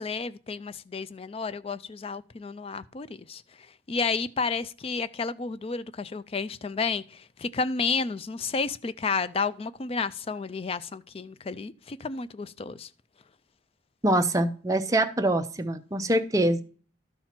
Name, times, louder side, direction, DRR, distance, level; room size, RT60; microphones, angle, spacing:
voice 1, 0.0-3.4 3.9-12.9, left 4 dB, 30° left, 0.4 m, -31 dB
voice 2, 14.0-16.6, right 1 dB, 15° right, 0.6 m, -24 dB
12.5 x 4.4 x 5.8 m
head